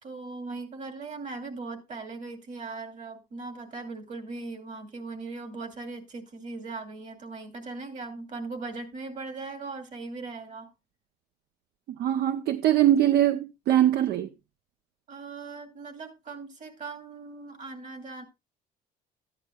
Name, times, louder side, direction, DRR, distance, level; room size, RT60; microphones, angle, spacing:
voice 1, 0.0-10.7 15.1-18.2, right 3 dB, 45° right, 2.5 m, -39 dB
voice 2, 12.0-14.3, right 12 dB, 70° right, 0.7 m, -22 dB
14.0 x 10.5 x 2.3 m
cardioid pair, 110°, 17 cm